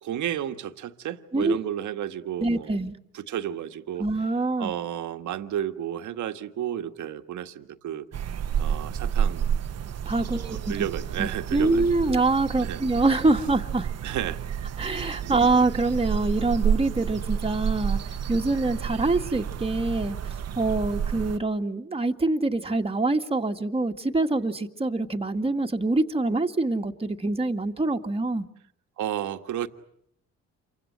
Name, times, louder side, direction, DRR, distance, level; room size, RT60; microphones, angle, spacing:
voice 1, 0.0-2.8 3.1-4.1 4.6-8.0 8.6-9.6 10.2-12.1 12.6-12.8 14.0-14.4 15.2-15.4 29.0-29.7, right 11 dB, 75° right, 1.8 m, -32 dB
voice 2, 2.4-2.9 4.0-4.7 10.1-10.7 11.2-13.9 14.8-20.2 20.6-28.5, right 2 dB, 20° right, 2.1 m, -25 dB
sound 1, 8.1-21.4, right 8 dB, 55° right, 1.2 m, -30 dB
28.5 x 24.5 x 7.8 m
cardioid pair, 90°, 30 cm